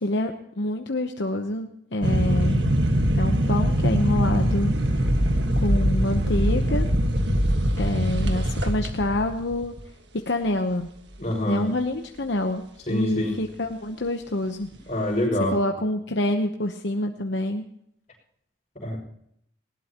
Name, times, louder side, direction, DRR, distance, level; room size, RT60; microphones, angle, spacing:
voice 1, 0.0-2.7 3.2-5.1 5.6-6.9 7.8-9.7 10.2-10.9 11.5-14.7 15.5-17.7, left 1 dB, 65° left, 4 dB, 1.0 m, -27 dB
sound 1, 2.0-9.8, equal, 65° right, 1.6 m, -22 dB
voice 2, 11.2-11.7 12.9-13.4 14.9-15.5 18.8-19.0, left 1 dB, 35° left, -1 dB, 6.1 m, -25 dB
19.5 x 18.0 x 3.0 m, 0.73 s
head